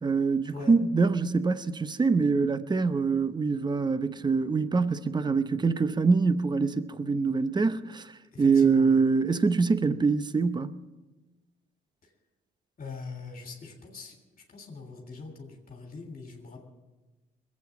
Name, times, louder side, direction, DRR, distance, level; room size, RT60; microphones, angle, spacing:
voice 1, 0.0-8.1 8.4-10.7, right 4 dB, 20° right, 0.8 m, -24 dB
voice 2, 8.3-9.0 12.0-12.1 12.8-14.2 14.5-16.6, left 4 dB, 40° left, 3.0 m, -42 dB
20.5 x 8.5 x 7.1 m
cardioid pair, 90°, 20 cm